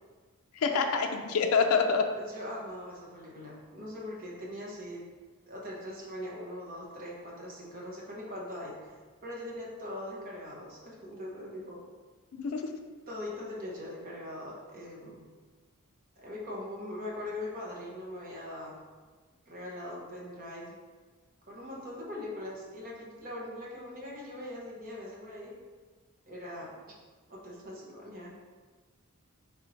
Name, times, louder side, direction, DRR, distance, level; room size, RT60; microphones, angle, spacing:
voice 1, 0.5-2.1 12.3-12.7, left 5 dB, 75° left, 4 dB, 0.4 m, -26 dB
voice 2, 2.2-5.1 5.5-9.0 9.2-11.8 13.1-15.3 16.2-18.8 19.5-20.8 21.5-25.6 26.3-26.9 27.3-28.4, left 1 dB, 40° right, -4 dB, 1.0 m, -41 dB
3.6 x 2.7 x 4.3 m, 1.4 s
head